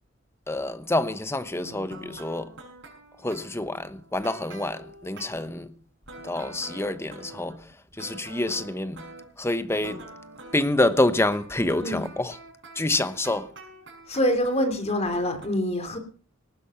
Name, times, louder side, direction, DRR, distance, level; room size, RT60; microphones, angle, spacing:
voice 1, 0.5-2.5 3.2-5.7 6.2-7.6 8.0-9.0 9.4-10.0 10.5-12.4 12.7-13.5, left 2 dB, 15° left, 1.1 m, -27 dB
sound 1, 1.6-5.5 6.1-9.5 9.8-15.5, right 2 dB, 65° right, 6.7 m, -45 dB
voice 2, 14.1-16.0, equal, 35° left, 3.2 m, -25 dB
19.0 x 10.5 x 5.8 m
head